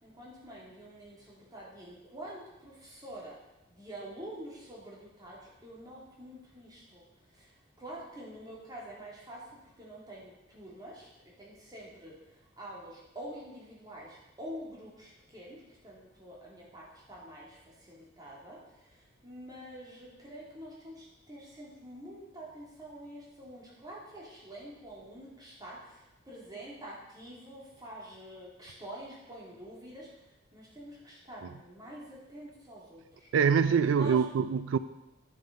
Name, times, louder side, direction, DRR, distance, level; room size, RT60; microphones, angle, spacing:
voice 1, 0.0-3.4 3.7-7.0 7.3-9.5 9.8-11.1 11.4-12.2 12.6-30.1 30.5-33.3 33.7-34.3, right 1 dB, 20° right, -5 dB, 2.7 m, -47 dB
voice 2, 33.3-34.8, right 6 dB, 90° right, 13 dB, 0.4 m, -24 dB
10.0 x 6.6 x 5.2 m, 0.99 s
head